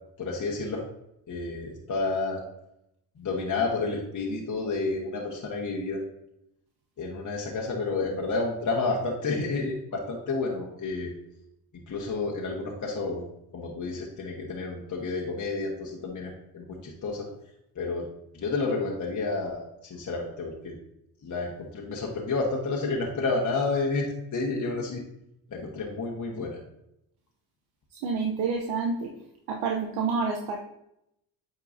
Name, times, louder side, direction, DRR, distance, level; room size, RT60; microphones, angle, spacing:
voice 1, 0.2-0.8 1.3-2.4 3.2-6.0 7.0-11.1 11.7-13.2 13.5-17.3 17.7-18.1 18.3-20.8 21.2-25.0 25.5-26.6, left 3 dB, 50° left, -1 dB, 1.4 m, -30 dB
voice 2, 28.0-29.1 29.5-30.6, right 4 dB, 80° right, 1 dB, 0.9 m, -28 dB
8.5 x 4.4 x 2.7 m, 0.80 s
supercardioid pair, 65°, 39 cm